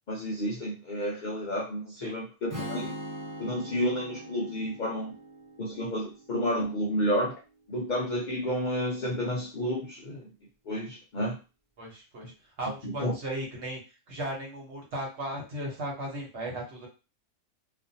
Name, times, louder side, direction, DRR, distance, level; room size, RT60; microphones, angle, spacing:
voice 1, 0.1-2.9 3.4-5.1 5.6-7.4 7.7-10.3 10.7-11.4 12.8-13.2, equal, 75° left, -2 dB, 0.4 m, -31 dB
Strum, 2.5-6.7, right 1 dB, 25° right, 0.9 m, -41 dB
voice 2, 11.8-12.3 12.6-13.8 14.1-16.9, right 1 dB, 55° right, -2 dB, 1.2 m, -36 dB
2.4 x 2.4 x 2.7 m, 0.31 s
omnidirectional pair, 1.5 m